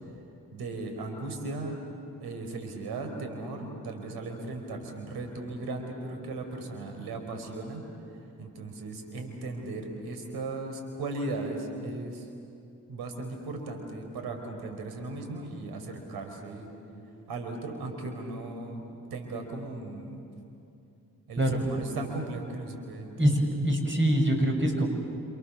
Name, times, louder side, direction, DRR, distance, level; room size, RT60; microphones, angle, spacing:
voice 1, 0.5-1.8 2.2-7.8 8.4-12.3 12.9-16.7 17.3-20.2 21.3-23.5, right 2 dB, 80° right, 5 dB, 4.4 m, -37 dB
voice 2, 23.6-24.9, equal, 30° right, 3 dB, 7.1 m, -24 dB
29.5 x 27.5 x 7.3 m, 2.7 s
hypercardioid pair, 40°, 37 cm